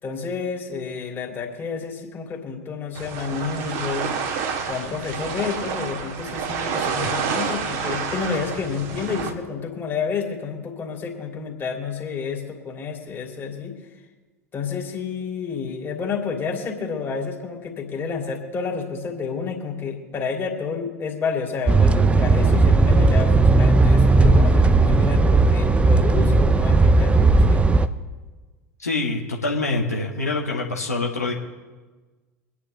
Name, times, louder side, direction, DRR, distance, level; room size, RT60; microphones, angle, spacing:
voice 1, 0.0-4.1 4.7-13.7 14.5-27.6, left 5 dB, 25° left, -1 dB, 3.0 m, -30 dB
sound 1, 3.0-9.3, right 6 dB, 50° right, 1.8 m, -28 dB
sound 2, 21.7-27.9, right 3 dB, 15° right, 0.7 m, -16 dB
voice 2, 28.8-31.3, left 3 dB, 80° left, -1 dB, 1.6 m, -25 dB
24.5 x 9.9 x 3.4 m, 1.3 s
figure-of-eight pair, 75°, 8 cm